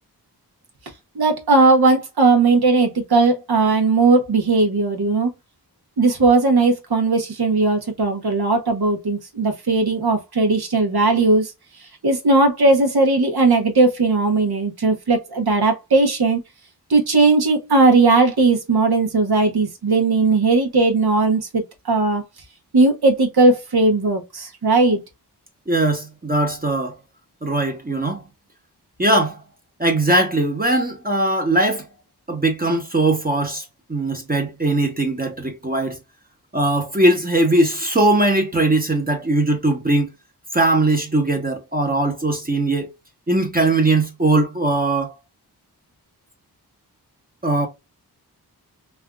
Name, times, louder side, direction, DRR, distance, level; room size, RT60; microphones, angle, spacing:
voice 1, 1.1-5.3 6.0-11.5 12.0-16.4 16.9-22.2 22.7-25.0, right 3 dB, 75° right, 1.0 m, -17 dB
voice 2, 25.7-27.0 27.4-28.2 29.0-29.4 29.8-31.9 32.3-33.6 33.9-36.0 36.5-40.1 40.5-42.9 43.3-45.1 47.4-47.7, right 2 dB, 25° right, 0.8 m, -20 dB
3.3 x 2.4 x 2.3 m
cardioid pair, 50°, 39 cm